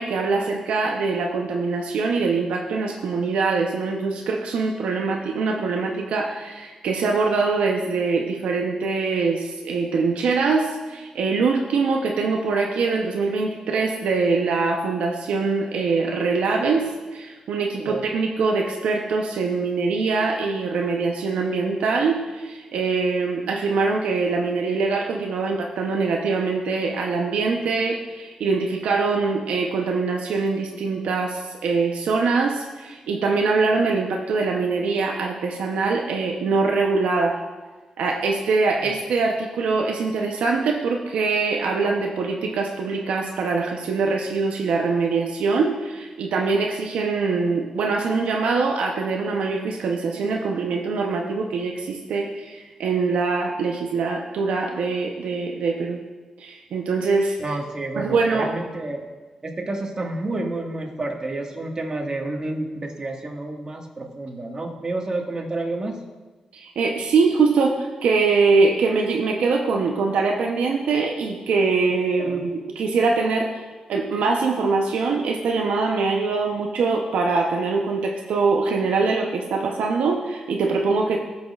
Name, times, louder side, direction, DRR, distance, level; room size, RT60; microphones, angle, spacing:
voice 1, 0.0-37.4 38.0-56.0 56.4-57.4 57.9-58.5 66.5-81.2, right 4 dB, 90° right, 1 dB, 0.7 m, -23 dB
voice 2, 57.4-59.0 59.4-65.9 72.2-72.4, right 2 dB, 35° right, 1 dB, 1.6 m, -30 dB
15.0 x 6.1 x 2.4 m, 1.3 s
cardioid pair, 70°, 2 cm